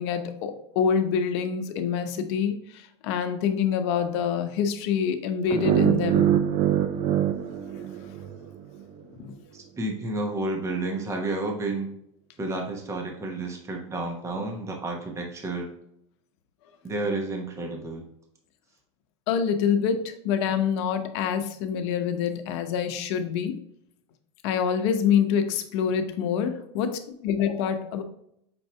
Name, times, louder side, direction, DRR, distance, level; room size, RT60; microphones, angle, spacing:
voice 1, 0.0-6.3 9.1-9.3 19.3-23.6 24.4-28.0, left 7 dB, 65° left, 8 dB, 0.8 m, -26 dB
sound 1, 5.5-8.6, right 10 dB, 45° right, 0.5 m, -24 dB
voice 2, 9.5-12.0 12.4-15.7 16.8-18.0, right 2 dB, 20° right, 2 dB, 1.0 m, -31 dB
6.0 x 2.7 x 3.2 m, 0.75 s
supercardioid pair, 120°, 16 cm